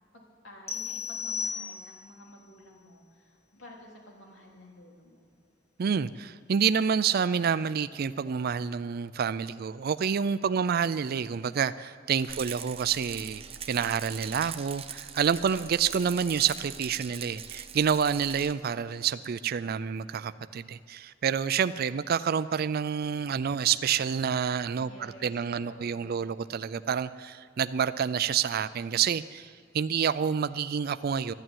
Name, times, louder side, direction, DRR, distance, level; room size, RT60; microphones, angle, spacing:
voice 1, 0.1-5.3 10.5-10.8 12.5-12.6 24.8-26.2, left 1 dB, 80° left, -1 dB, 3.6 m, -51 dB
sound 1, 0.7-2.2, left 6 dB, 15° left, 1.0 m, -35 dB
voice 2, 5.8-31.3, right 7 dB, 50° right, 14 dB, 0.4 m, -28 dB
Rattle, 12.3-18.5, right 7 dB, 30° right, 0.8 m, -41 dB
12.5 x 11.5 x 9.1 m, 2.3 s
head